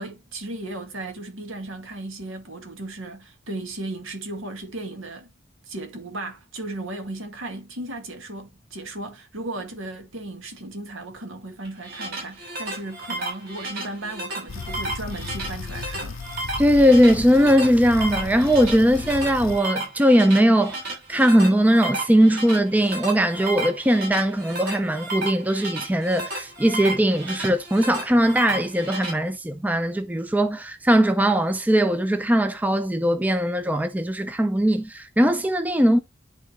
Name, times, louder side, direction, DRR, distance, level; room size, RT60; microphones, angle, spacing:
voice 1, 0.0-5.3 5.6-16.2, right 2 dB, 75° right, 2.0 m, -35 dB
sound 1, 11.6-29.1, right 2 dB, 45° right, 5.6 m, -33 dB
sound 2, 14.5-19.6, left 5 dB, 75° left, 0.5 m, -35 dB
voice 2, 16.6-20.8 21.1-36.0, equal, 10° right, 0.4 m, -20 dB
11.0 x 3.8 x 3.0 m
head